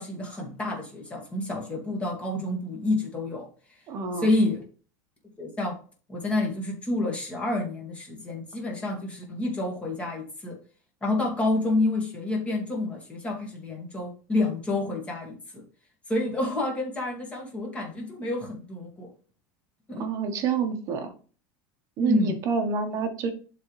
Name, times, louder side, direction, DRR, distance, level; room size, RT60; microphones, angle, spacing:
voice 1, 0.0-3.5 4.2-4.6 5.4-5.8 6.1-10.6 11.0-15.6 16.1-19.1 19.9-20.0 22.0-22.4, left 2 dB, 15° left, -1 dB, 1.9 m, -28 dB
voice 2, 3.9-4.3 19.9-21.1 22.0-23.3, right 5 dB, 35° right, 7 dB, 1.2 m, -28 dB
11.0 x 4.0 x 3.2 m, 0.39 s
cardioid pair, 170°, 9 cm